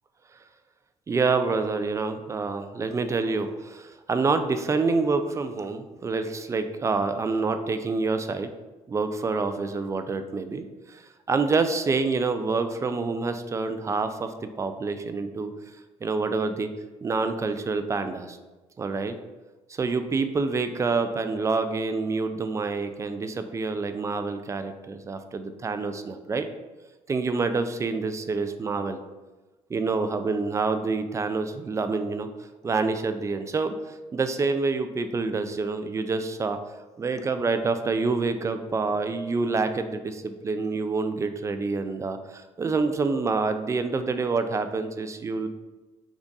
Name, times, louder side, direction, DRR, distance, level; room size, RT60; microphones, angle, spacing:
voice 1, 1.1-8.5 8.9-10.7 11.3-15.5 16.0-16.7 17.0-18.4 18.8-19.2 19.8-26.5 27.1-29.0 29.7-32.3 32.6-33.8 34.1-36.6 37.0-45.5, right 4 dB, 25° right, 9 dB, 0.3 m, -27 dB
3.5 x 2.4 x 3.9 m, 1.2 s
cardioid pair, 95°, 13 cm